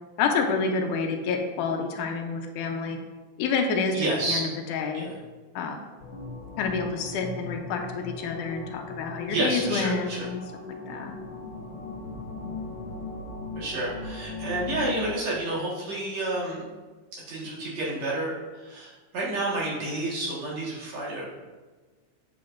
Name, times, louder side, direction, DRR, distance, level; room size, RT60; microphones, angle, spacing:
voice 1, 0.2-3.0 3.4-5.1 5.6-5.8 6.6-10.4 10.9-11.2, left 4 dB, 85° left, 3 dB, 2.3 m, -28 dB
voice 2, 3.9-4.4 4.9-5.1 9.3-10.2 13.6-16.7 17.1-21.3, right 2 dB, 60° right, -6 dB, 2.9 m, -30 dB
sound 1, 6.0-15.1, left 3 dB, 50° left, 2.2 m, -38 dB
8.0 x 7.7 x 2.6 m, 1.3 s
omnidirectional pair, 3.5 m